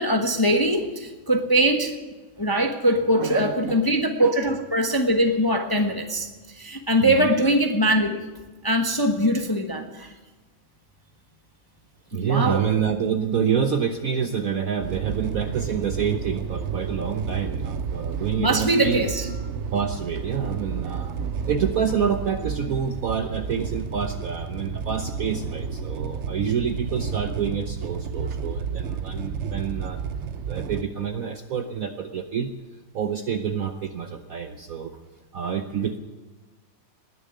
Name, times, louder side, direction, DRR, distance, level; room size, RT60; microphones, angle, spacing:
voice 1, 0.0-1.9 2.4-8.2 8.6-10.1 12.1-12.6 18.4-19.3, right 1 dB, 15° left, 4 dB, 0.9 m, -22 dB
voice 2, 3.0-3.9 4.2-4.3 7.0-7.3 12.1-19.2 19.7-21.1 21.4-30.0 30.4-32.5 32.9-34.9 35.3-36.0, right 7 dB, 60° right, 7 dB, 1.0 m, -27 dB
sound 1, 14.8-30.8, right 6 dB, 75° right, 0.6 m, -31 dB
19.5 x 7.0 x 9.5 m, 1.2 s
omnidirectional pair, 2.1 m